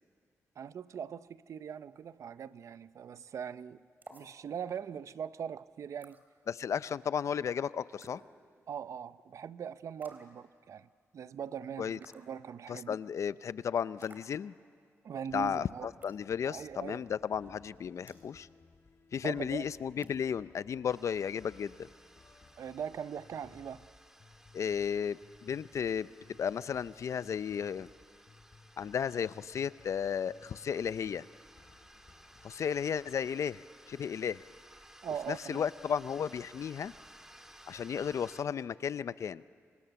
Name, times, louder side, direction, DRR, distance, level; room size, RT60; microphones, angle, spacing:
voice 1, 0.6-3.8 4.1-6.2 8.7-13.0 15.0-15.9 16.5-17.0 19.2-19.7 22.6-23.9 35.0-35.6, right 8 dB, 70° right, 0.7 m, -41 dB
sound 1, 4.0-4.3 6.0-6.2 8.0-8.2 10.0-10.3 12.0-12.3 14.0-14.3 16.0-16.2 18.1-18.3 20.0-20.3, right 2 dB, 35° right, 3.4 m, -53 dB
voice 2, 6.5-8.2 11.8-12.0 12.7-14.6 15.3-15.7 16.0-18.5 19.1-21.9 24.5-26.1 26.4-27.9 28.8-31.3 32.4-33.6 33.9-34.4 35.3-36.9 37.7-39.4, left 7 dB, 65° left, 0.6 m, -34 dB
sound 2, 15.3-33.1, left 3 dB, 45° left, 4.7 m, -61 dB
sound 3, 20.9-38.4, right 1 dB, 10° right, 2.2 m, -58 dB
28.5 x 25.5 x 7.0 m
cardioid pair, 80°, 6 cm